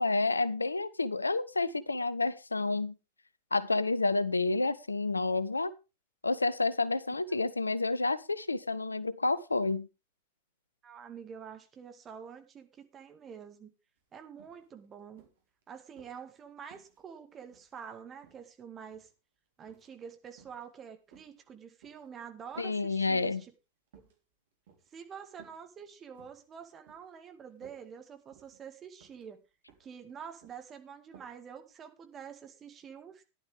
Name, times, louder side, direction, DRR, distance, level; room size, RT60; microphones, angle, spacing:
voice 1, 0.0-2.9 3.5-5.7 6.2-9.9 22.6-23.4, left 3 dB, 80° left, 0.6 m, -29 dB
voice 2, 10.8-12.7 12.9-13.7 14.1-15.2 15.7-19.1 19.6-23.5 24.9-29.4 29.8-33.2, right 7 dB, 25° right, 2.0 m, -47 dB
sound 1, 14.0-14.1 14.4-14.6 15.2-16.2 16.7-17.8 18.2-19.1 19.6-19.9 20.3-20.6 21.1-22.1 22.5-22.8 23.2-23.5 23.9-24.2 24.7-24.9 25.4-25.7 26.0-26.4 26.9-27.1 27.4-27.8 28.3-28.7 29.0-29.2 29.7-30.0 30.2-30.6 31.1-31.4 31.7-31.8, right 6 dB, 60° right, 3.5 m, -60 dB
14.5 x 11.0 x 3.6 m
figure-of-eight pair, 90°, 0 cm